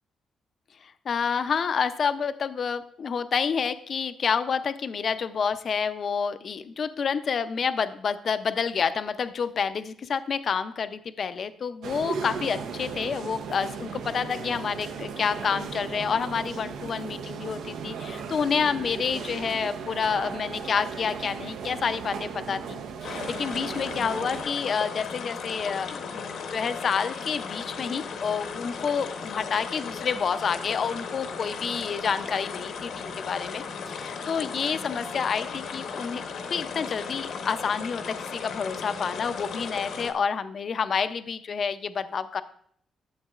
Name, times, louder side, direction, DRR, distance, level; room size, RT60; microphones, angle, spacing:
voice 1, 0.8-36.2 36.5-42.4, left 6 dB, 50° left, 12 dB, 0.4 m, -29 dB
sound 1, 11.8-24.4, right 6 dB, 85° right, 0.6 m, -36 dB
sound 2, 23.0-40.1, left 5 dB, 75° left, 0.8 m, -36 dB
11.5 x 7.3 x 2.3 m, 0.62 s
cardioid pair, 115°, 0 cm